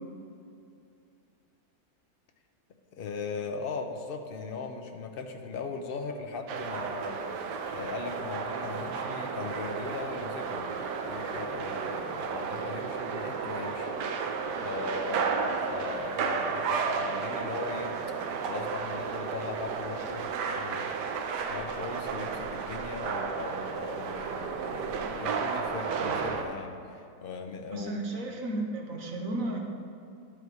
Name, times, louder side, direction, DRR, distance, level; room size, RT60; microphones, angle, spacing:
voice 1, 2.9-7.2 7.7-13.9 14.6-17.9 18.4-21.0 21.5-28.0, left 4 dB, 65° left, 4 dB, 0.5 m, -39 dB
sound 1, 6.5-26.4, right 5 dB, 85° right, 1.3 m, -33 dB
voice 2, 27.7-29.6, right 2 dB, 60° right, 0 dB, 1.4 m, -33 dB
12.0 x 4.9 x 4.8 m, 2.5 s
omnidirectional pair, 1.7 m